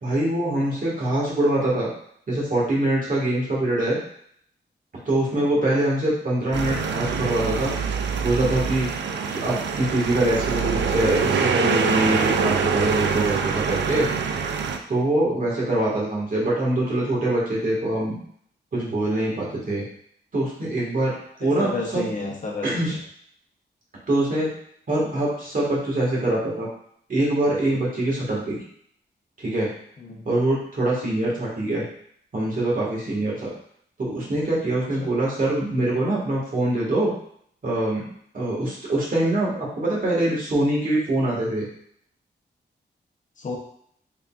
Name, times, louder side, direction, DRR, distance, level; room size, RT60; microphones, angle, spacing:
voice 1, 0.0-1.9 2.3-4.0 5.1-7.7 8.2-8.9 9.3-14.1 14.9-18.2 18.7-19.8 20.3-22.1 22.6-23.0 24.1-24.5 24.9-26.7 27.1-28.6 29.4-29.7 30.2-31.8 32.3-33.5 34.0-37.1 37.6-38.0 38.3-41.7, right 1 dB, 50° right, -5 dB, 1.5 m, -24 dB
sound 1, 6.5-14.8, right 5 dB, 75° right, 0.4 m, -24 dB
voice 2, 21.4-23.0 30.0-30.2 35.0-35.1 43.4-43.6, left 3 dB, 45° left, 0 dB, 0.8 m, -32 dB
3.8 x 3.4 x 2.3 m, 0.66 s
cardioid pair, 90°, 18 cm